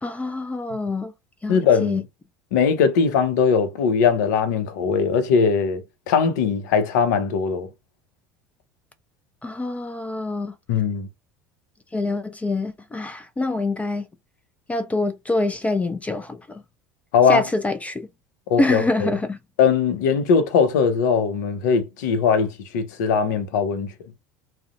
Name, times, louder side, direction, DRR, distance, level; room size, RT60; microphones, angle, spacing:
voice 1, 0.0-1.1 1.4-2.0 9.4-10.5 11.9-14.0 14.7-16.6 17.3-18.1 18.6-19.4, left 2 dB, 15° left, 0.4 m, -25 dB
voice 2, 1.5-2.0 2.5-5.8 6.1-7.7 10.7-11.1 17.1-17.4 18.5-19.1 19.6-23.9, left 6 dB, 70° left, 0.6 m, -20 dB
2.4 x 2.1 x 2.5 m
hypercardioid pair, 75°, 10 cm